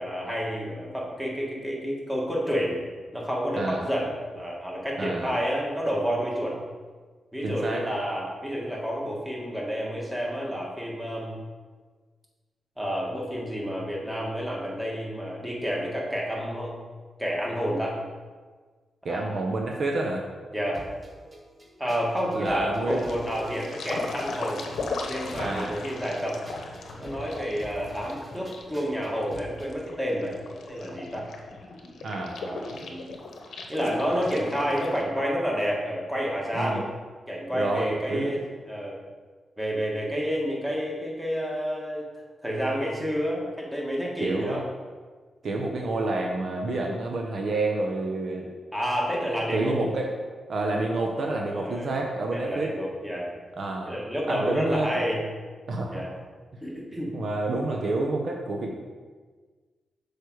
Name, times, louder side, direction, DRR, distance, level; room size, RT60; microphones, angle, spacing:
voice 1, 0.0-2.8 3.1-6.6 7.3-11.3 12.8-16.7 17.2-18.0 19.1-19.3 20.5-20.8 21.8-24.6 25.0-26.4 27.0-31.3 32.4-33.1 33.7-36.8 37.3-39.0 39.6-42.0 42.4-44.6 45.4-45.6 48.7-49.8 51.5-52.0 52.3-53.3 53.8-55.2 55.9-56.1 56.6-57.1, equal, 10° right, -3 dB, 1.7 m, -29 dB
voice 2, 5.0-5.3 7.4-7.9 19.0-20.2 22.3-23.0 25.4-25.8 32.0-32.4 36.5-36.8 37.5-38.4 44.2-44.6 45.4-48.5 49.5-50.1 50.5-52.7 53.6-53.9 54.3-55.0 55.7-56.0 57.1-58.7, right 2 dB, 60° right, 1 dB, 0.8 m, -28 dB
sound 1, 20.7-29.7, right 1 dB, 25° right, 1.7 m, -47 dB
sound 2, 22.9-35.0, left 3 dB, 75° left, 0.9 m, -38 dB
6.6 x 4.7 x 4.7 m, 1.5 s
cardioid pair, 105°, 0 cm